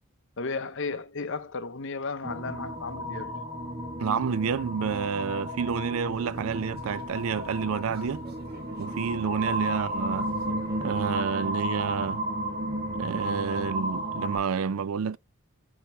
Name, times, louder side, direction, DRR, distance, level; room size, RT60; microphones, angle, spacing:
voice 1, 0.4-3.4, left 4 dB, 55° left, 0.8 m, -34 dB
sound 1, 2.2-14.4, right 1 dB, 20° right, 1.6 m, -33 dB
voice 2, 4.0-8.2 8.8-10.3 10.8-12.2 13.0-15.2, right 6 dB, 70° right, 0.4 m, -29 dB
sound 2, 6.0-11.1, right 1 dB, 45° right, 1.9 m, -49 dB
10.0 x 3.4 x 3.1 m
head